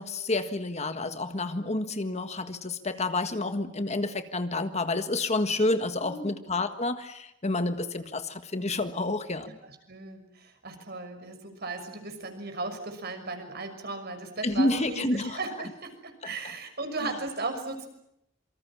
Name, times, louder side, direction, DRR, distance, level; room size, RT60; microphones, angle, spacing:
voice 1, 0.0-9.5 14.4-15.4 17.0-17.1, left 2 dB, 35° left, 9 dB, 1.7 m, -29 dB
voice 2, 6.0-6.4 9.6-17.9, right 3 dB, 55° right, 6 dB, 6.2 m, -36 dB
27.5 x 25.0 x 7.4 m, 0.81 s
head